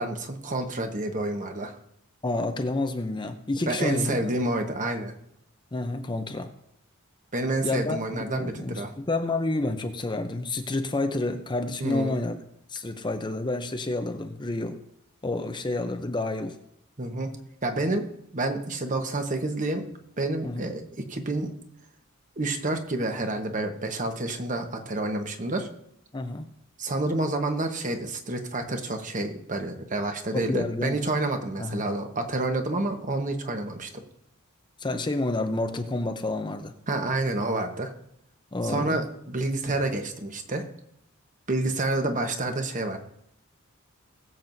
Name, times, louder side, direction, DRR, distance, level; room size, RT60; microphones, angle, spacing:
voice 1, 0.0-1.7 3.7-5.1 7.3-8.9 11.8-12.2 17.0-17.3 17.6-18.1 18.3-19.8 20.2-21.5 22.4-25.7 26.8-33.9 36.9-37.9 38.6-40.6 41.5-43.0, right 2 dB, 35° right, 5 dB, 1.2 m, -29 dB
voice 2, 2.2-4.3 5.7-6.5 7.6-12.4 12.7-14.8 15.2-16.6 20.4-20.7 26.1-26.5 30.3-31.0 31.6-31.8 34.8-36.7 38.5-39.0, left 2 dB, 20° left, 6 dB, 0.6 m, -29 dB
20.5 x 7.4 x 2.7 m, 0.77 s
head